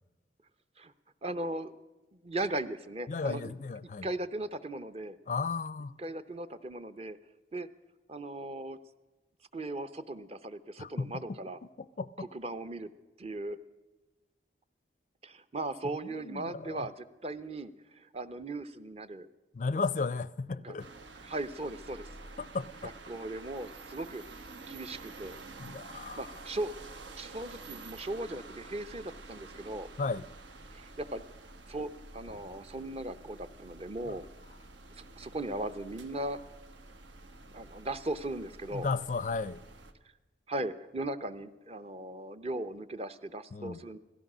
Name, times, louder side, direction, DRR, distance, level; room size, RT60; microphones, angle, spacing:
voice 1, 1.2-1.7 2.2-3.5 4.0-5.2 6.0-7.2 7.5-7.7 8.1-8.8 9.5-11.6 12.2-12.9 13.2-13.6 15.2-19.3 20.6-20.7 21.2-22.1 22.8-24.2 24.7-25.4 25.9-26.7 27.2-29.9 30.7-31.2 31.7-34.2 35.2-36.4 37.5-38.9 40.5-44.0, right 2 dB, 35° right, 0.7 m, -38 dB
voice 2, 3.1-4.1 5.3-6.0 10.8-11.2 11.8-12.1 16.0-16.9 19.5-20.9 22.4-22.9 25.6-26.3 30.0-30.2 34.1-34.2 38.7-39.6 43.5-43.8, left 4 dB, 45° left, 0.4 m, -34 dB
sound 1, 20.8-39.9, right 3 dB, 85° right, 1.4 m, -49 dB
17.0 x 14.0 x 6.1 m
head